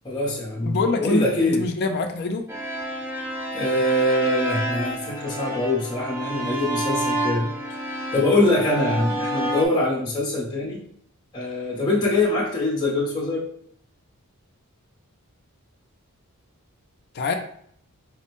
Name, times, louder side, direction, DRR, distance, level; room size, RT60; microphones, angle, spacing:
voice 1, 0.0-1.6 3.5-7.5 8.1-10.8 11.3-13.5, left 1 dB, 20° left, -5 dB, 0.7 m, -23 dB
voice 2, 0.6-2.5 17.1-17.3, left 3 dB, 50° left, 4 dB, 0.4 m, -25 dB
sound 1, 2.5-9.7, right 1 dB, 10° right, 0.4 m, -29 dB
4.1 x 2.1 x 3.0 m, 0.64 s
head